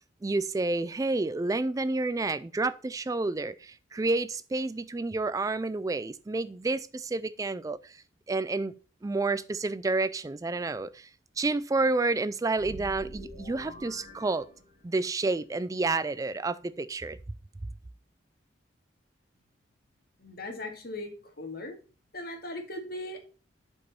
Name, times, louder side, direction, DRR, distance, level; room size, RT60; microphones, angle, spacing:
voice 1, 0.2-8.0 8.3-8.7 9.0-11.1 11.4-14.5 14.8-17.2, right 3 dB, 20° right, 0.3 m, -29 dB
sound 1, 12.5-15.1, equal, 30° left, 3.2 m, -45 dB
voice 2, 20.2-21.7 22.1-23.2, left 1 dB, 55° left, 2.2 m, -38 dB
11.0 x 5.3 x 4.3 m
head